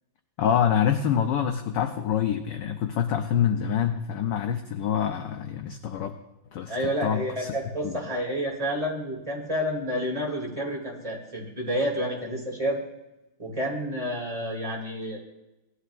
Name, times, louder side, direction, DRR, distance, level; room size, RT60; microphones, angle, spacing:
voice 1, 0.4-6.1 6.5-7.5 7.8-8.0, left 9 dB, 70° left, 6 dB, 1.1 m, -26 dB
voice 2, 6.7-12.8 13.4-15.2, equal, 15° right, -2 dB, 2.4 m, -29 dB
17.5 x 11.5 x 2.4 m, 0.97 s
omnidirectional pair, 2.4 m